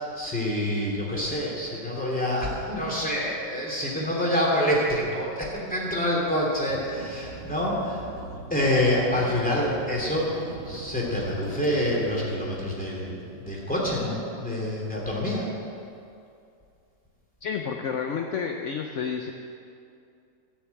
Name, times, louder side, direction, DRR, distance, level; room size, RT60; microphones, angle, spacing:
voice 1, 0.0-8.1 8.5-15.5, left 1 dB, 5° left, -5 dB, 2.8 m, -27 dB
sound 1, 6.7-12.2, right 3 dB, 85° right, 2.3 m, -41 dB
voice 2, 17.4-19.3, left 6 dB, 60° left, 4 dB, 0.8 m, -30 dB
14.0 x 6.9 x 8.3 m, 2.5 s
omnidirectional pair, 1.9 m